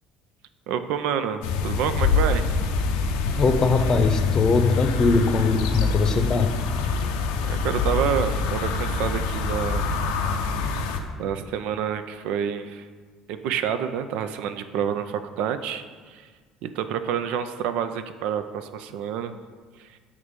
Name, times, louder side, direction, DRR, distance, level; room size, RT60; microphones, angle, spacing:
voice 1, 0.7-2.5 7.5-9.8 11.2-12.8 13.3-16.2 16.6-19.3, right 8 dB, 60° right, 10 dB, 0.3 m, -28 dB
sound 1, 1.4-11.0, left 4 dB, 70° left, 0.5 m, -25 dB
voice 2, 3.4-6.5, left 3 dB, 35° left, 6 dB, 0.7 m, -21 dB
7.1 x 3.3 x 5.1 m, 1.5 s
figure-of-eight pair, 55°, 2 cm